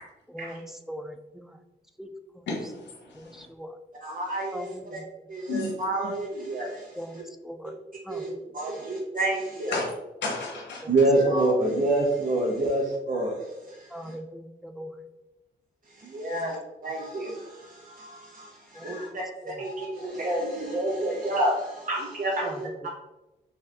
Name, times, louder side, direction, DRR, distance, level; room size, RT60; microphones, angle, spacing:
voice 1, 0.3-1.6 2.0-2.1 2.4-2.5 3.2-3.7 4.5-5.0 7.0-7.2 7.4-7.7 8.1-8.4 10.8-10.9 11.3-11.4 13.9-14.9 16.3-16.5 18.8-19.2 19.4-19.6 22.4-22.7, equal, ahead, 6 dB, 0.3 m, -40 dB
voice 2, 2.5-3.4 5.5-5.7 9.7-9.8 10.2-10.9, left 3 dB, 75° left, -1 dB, 0.7 m, -32 dB
voice 3, 4.0-5.0 5.3-7.2 8.1-8.3 8.5-9.8 10.9-13.3 13.7-14.1 16.0-16.5 16.8-22.9, right 2 dB, 50° right, -3 dB, 0.6 m, -28 dB
2.7 x 2.3 x 3.2 m, 1.0 s
cardioid pair, 65°, 19 cm